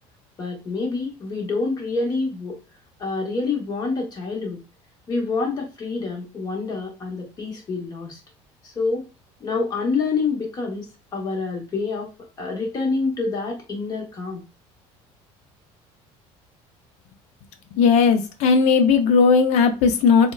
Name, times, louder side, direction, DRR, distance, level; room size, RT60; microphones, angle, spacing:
voice 1, 0.4-2.6 3.0-4.6 5.1-8.2 8.6-9.1 9.4-12.1 12.4-14.4, left 3 dB, 30° left, 0 dB, 1.0 m, -27 dB
voice 2, 17.8-20.3, left 5 dB, 65° left, 7 dB, 0.5 m, -17 dB
3.6 x 2.1 x 2.3 m, 0.30 s
cardioid pair, 140°, 12 cm